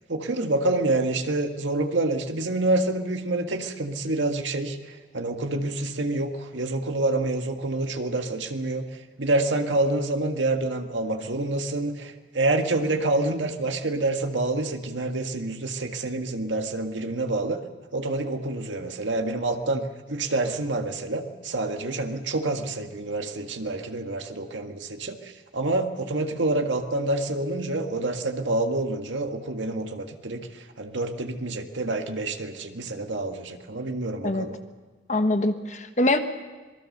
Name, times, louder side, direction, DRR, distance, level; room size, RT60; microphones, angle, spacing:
voice 1, 0.1-8.9 9.2-17.6 17.9-30.5 30.8-34.6, right 2 dB, 85° right, 5 dB, 1.8 m, -27 dB
voice 2, 35.1-36.2, left 2 dB, 40° left, 7 dB, 1.4 m, -23 dB
26.5 x 20.5 x 6.7 m, 1.4 s
head